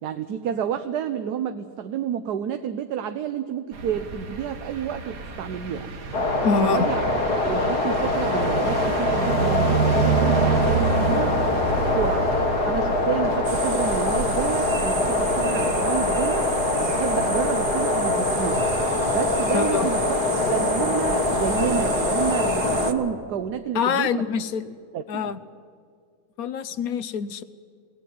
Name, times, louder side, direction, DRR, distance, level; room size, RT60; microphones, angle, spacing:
voice 1, 0.0-5.9 6.6-7.0 7.5-11.4 11.7-12.3 12.6-16.5 16.8-18.7 19.1-20.0 20.4-24.2 24.9-25.3, right 8 dB, 90° right, 8 dB, 1.4 m, -30 dB
sound 1, 3.7-21.7, right 5 dB, 65° right, 1.8 m, -29 dB
sound 2, 6.1-22.9, left 3 dB, 90° left, 2.6 m, -24 dB
voice 2, 6.4-6.9 19.5-19.9 23.7-24.8 25.1-25.4 26.4-27.4, left 6 dB, 70° left, 14 dB, 1.2 m, -25 dB
sound 3, 13.4-22.9, right 6 dB, 45° right, 0.8 m, -32 dB
22.0 x 17.0 x 9.4 m, 2.2 s
omnidirectional pair, 1.7 m